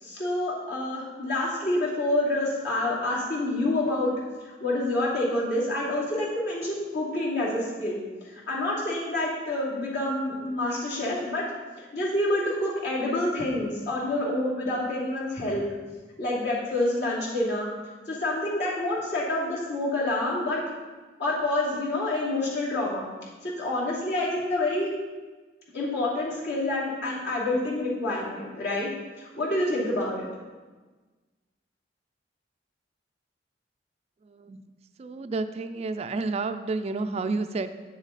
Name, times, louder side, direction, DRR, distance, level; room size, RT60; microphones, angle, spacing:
voice 1, 0.0-4.1 4.6-8.0 8.5-11.5 11.9-15.6 16.2-17.7 18.1-20.6 21.2-23.1 23.4-24.9 25.7-28.9 29.2-30.3, left 1 dB, 65° left, -6 dB, 2.7 m, -27 dB
voice 2, 34.2-34.6 35.0-37.7, right 3 dB, 35° right, 10 dB, 0.3 m, -30 dB
9.0 x 7.2 x 4.1 m, 1.3 s
head